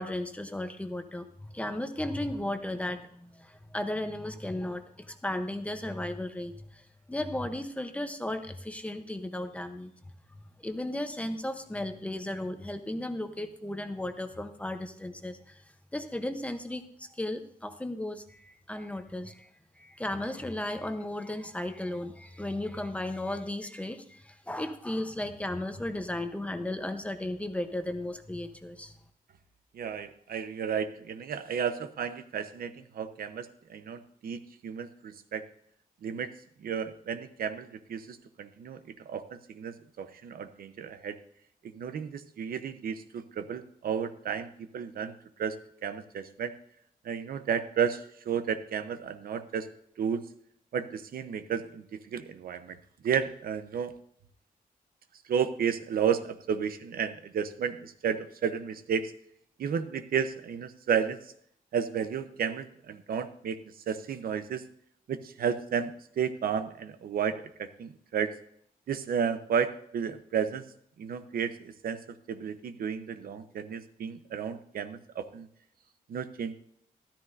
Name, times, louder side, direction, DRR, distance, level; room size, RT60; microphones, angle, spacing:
voice 1, 0.0-9.9 10.6-15.6 15.9-19.5 19.8-28.9, left 1 dB, 10° left, 7 dB, 0.8 m, -35 dB
voice 2, 29.7-35.4 36.0-36.3 36.6-38.8 39.0-41.2 41.6-44.5 44.7-45.1 45.4-45.6 45.8-46.6 47.0-49.7 50.0-50.2 50.7-52.8 53.0-53.9 55.3-59.1 59.6-61.2 61.7-63.6 63.9-64.6 65.1-68.3 68.9-70.6 71.0-72.0 72.3-75.5 76.1-76.5, right 7 dB, 80° right, 10 dB, 0.8 m, -32 dB
13.0 x 13.0 x 2.6 m, 0.67 s
wide cardioid pair, 160°, 15 cm